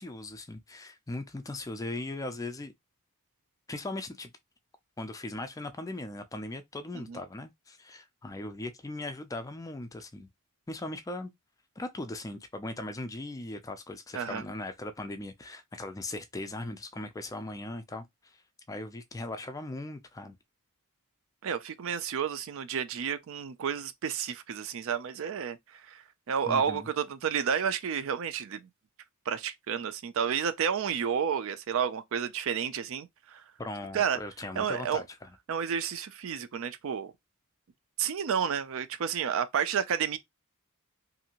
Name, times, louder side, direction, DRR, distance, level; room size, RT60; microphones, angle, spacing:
voice 1, 0.0-2.7 3.7-4.3 5.0-10.3 10.7-11.3 11.8-18.1 18.7-20.4 26.5-26.9 33.6-35.3, left 2 dB, 15° left, 0.3 m, -39 dB
voice 2, 21.4-28.7 29.3-33.4 33.9-34.2 34.6-35.0 35.5-37.1 38.0-40.2, right 7 dB, 60° right, 0.4 m, -31 dB
2.6 x 2.4 x 2.8 m
head